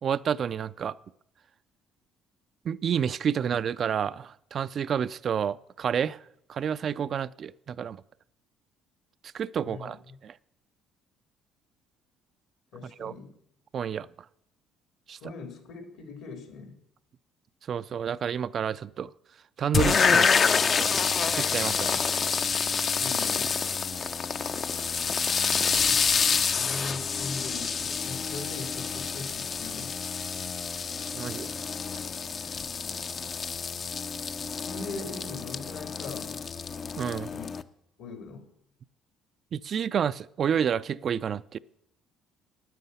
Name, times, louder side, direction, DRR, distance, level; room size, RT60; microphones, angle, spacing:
voice 1, 0.0-1.0 2.6-6.2 6.5-8.0 9.3-10.0 10.2-10.3 12.8-13.1 13.7-14.1 15.1-15.2 17.7-19.1 19.6-20.9 21.3-22.1 31.1-31.6 37.0-37.3 39.5-41.6, right 8 dB, 50° right, 15 dB, 0.4 m, -29 dB
voice 2, 9.6-10.2 12.7-13.3 15.1-16.8 23.0-23.5 25.9-26.0 26.5-29.9 34.5-36.4 37.3-37.6 38.0-38.4, left 4 dB, 75° left, 6 dB, 2.6 m, -41 dB
sound 1, 19.7-37.6, left 5 dB, 45° left, 0.6 m, -28 dB
9.4 x 9.3 x 8.1 m, 0.77 s
supercardioid pair, 70°, 0 cm